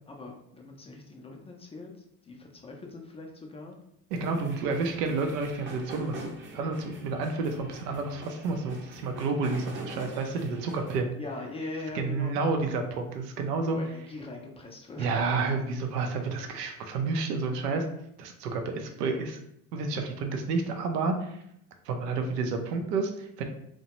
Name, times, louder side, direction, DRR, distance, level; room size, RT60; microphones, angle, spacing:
voice 1, 0.1-1.9 2.2-3.8 11.2-12.4 13.7-15.2, left 2 dB, 15° left, 1 dB, 0.4 m, -41 dB
sound 1, 4.1-11.0, right 2 dB, 25° right, 0.7 m, -44 dB
voice 2, 4.1-11.1 11.9-13.8 15.0-17.9 18.2-19.4 19.7-21.4 21.9-23.4, right 4 dB, 85° right, 4 dB, 0.6 m, -30 dB
2.7 x 2.2 x 2.9 m, 0.75 s
hypercardioid pair, 75°, 46 cm